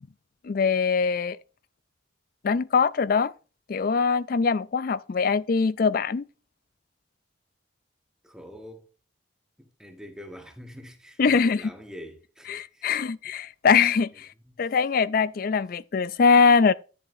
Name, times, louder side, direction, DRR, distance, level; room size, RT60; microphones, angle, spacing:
voice 1, 0.4-1.4 2.4-3.3 3.7-6.2 11.2-11.6 12.5-14.3 14.6-16.7, left 5 dB, 45° left, 0.4 m, -22 dB
voice 2, 8.2-8.9 9.6-13.0 14.5-14.7, equal, 5° right, 1.4 m, -45 dB
10.5 x 10.0 x 2.7 m
head